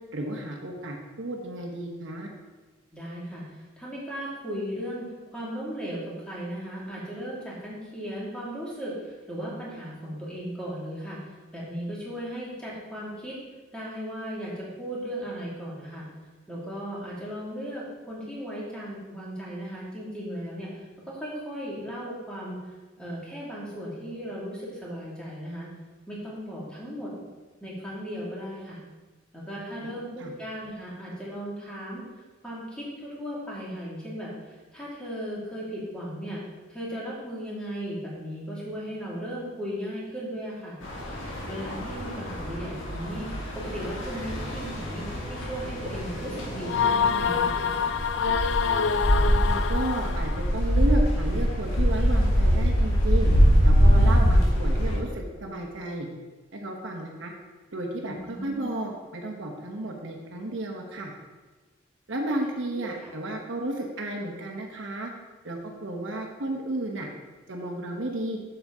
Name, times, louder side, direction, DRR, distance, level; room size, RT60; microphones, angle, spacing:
voice 1, 0.1-2.3 29.8-29.9 30.2-30.3 41.8-42.0 49.3-53.3 53.6-56.1 56.5-57.3 57.7-61.1 62.1-65.1 65.4-67.1 67.5-68.4, right 1 dB, 70° right, 1 dB, 1.1 m, -33 dB
voice 2, 2.9-5.0 5.3-11.2 11.5-13.4 13.7-16.1 16.5-20.8 21.0-22.6 23.0-25.7 26.1-27.3 27.6-28.8 29.3-32.0 32.4-36.4 36.7-40.8 41.5-47.7 54.0-54.3 58.0-58.7 62.8-63.1, equal, 5° left, -7 dB, 2.2 m, -36 dB
sound 1, 40.8-55.0, equal, 85° left, 2.3 m, -24 dB
sound 2, 46.7-50.5, left 6 dB, 65° left, 0.4 m, -26 dB
7.9 x 7.0 x 3.6 m, 1.3 s
head